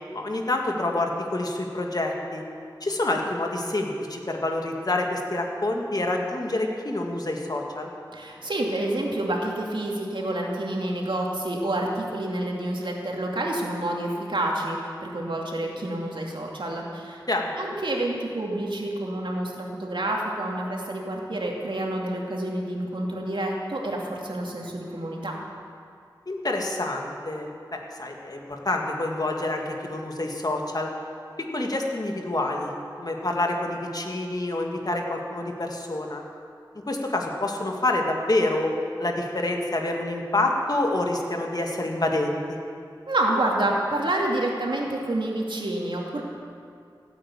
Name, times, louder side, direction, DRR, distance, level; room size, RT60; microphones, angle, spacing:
voice 1, 0.1-2.4 2.8-7.9 17.3-17.5 26.3-30.9 31.5-32.7 33.0-36.2 36.9-38.7 39.0-42.4, left 2 dB, 50° left, 1 dB, 2.1 m, -27 dB
voice 2, 8.1-17.2 17.6-25.3 43.1-46.2, right 1 dB, 75° right, -1 dB, 2.5 m, -28 dB
16.5 x 9.1 x 8.5 m, 2.4 s
wide cardioid pair, 60°, 8 cm